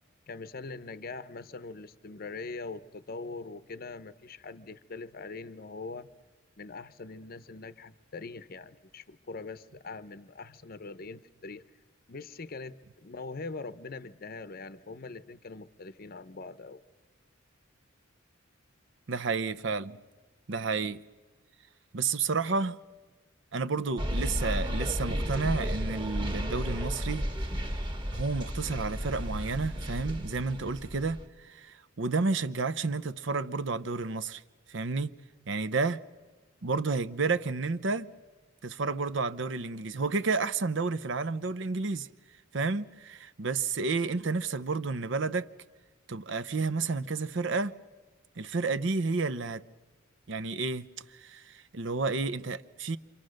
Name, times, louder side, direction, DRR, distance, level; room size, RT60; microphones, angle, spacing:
voice 1, 0.3-6.1 6.6-11.6 12.1-16.8, left 3 dB, 50° left, 0.7 m, -42 dB
voice 2, 19.1-20.0 20.5-21.0 21.9-22.8 23.5-27.3 28.1-34.4 34.7-35.1 35.5-36.0 36.6-38.1 38.6-42.1 42.5-45.5 46.1-47.8 48.4-49.6 50.3-53.0, right 4 dB, 65° right, 0.7 m, -31 dB
sound 1, 24.0-31.2, equal, 20° right, 1.7 m, -33 dB
28.0 x 25.5 x 6.5 m
head